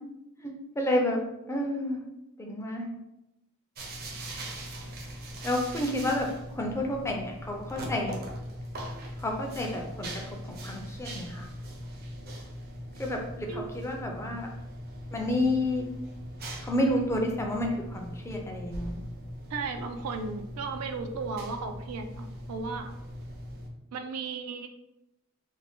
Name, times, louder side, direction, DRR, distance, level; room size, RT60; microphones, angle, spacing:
voice 1, 0.4-2.0 2.4-2.9 5.4-8.2 9.2-11.5 13.0-14.5 15.1-15.9 16.6-19.0, left 1 dB, 10° left, 1 dB, 0.4 m, -30 dB
sound 1, 3.7-23.7, equal, 45° right, 0.6 m, -40 dB
voice 2, 19.5-22.9 23.9-24.7, right 4 dB, 90° right, 6 dB, 0.4 m, -35 dB
2.6 x 2.1 x 3.4 m, 0.90 s
head